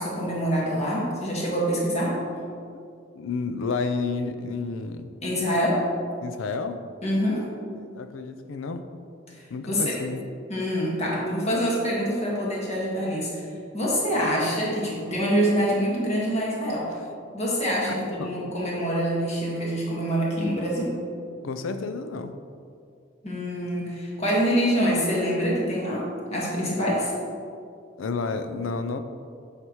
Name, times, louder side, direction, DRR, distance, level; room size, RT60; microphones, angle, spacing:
voice 1, 0.0-2.2 5.2-5.8 7.0-7.5 9.3-10.0 10.5-13.3 13.7-16.9 17.3-20.9 23.2-26.0 26.3-27.1, equal, 35° left, -5 dB, 1.6 m, -25 dB
voice 2, 3.2-5.1 6.2-6.8 7.8-8.8 9.5-10.2 17.9-18.3 21.4-22.3 28.0-29.0, left 4 dB, 90° left, 9 dB, 0.5 m, -31 dB
8.0 x 5.8 x 3.0 m, 2.4 s
head